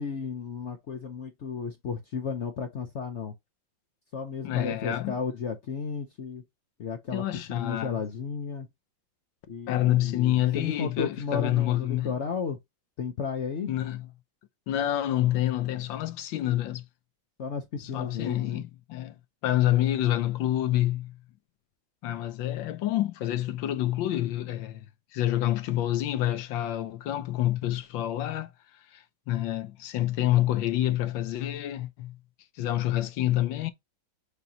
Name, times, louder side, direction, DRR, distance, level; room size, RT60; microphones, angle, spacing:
voice 1, 0.0-3.3 4.1-6.4 6.8-8.7 9.5-12.6 13.0-13.7 17.4-18.6, left 6 dB, 55° left, 0.8 m, -33 dB
voice 2, 4.4-5.2 7.1-8.0 9.7-12.2 13.7-14.1 14.7-16.8 17.8-19.1 19.4-21.1 22.0-24.8 25.1-28.5 28.9-32.2 32.6-33.7, left 13 dB, 80° left, 1.5 m, -27 dB
6.7 x 2.9 x 2.7 m
omnidirectional pair, 2.1 m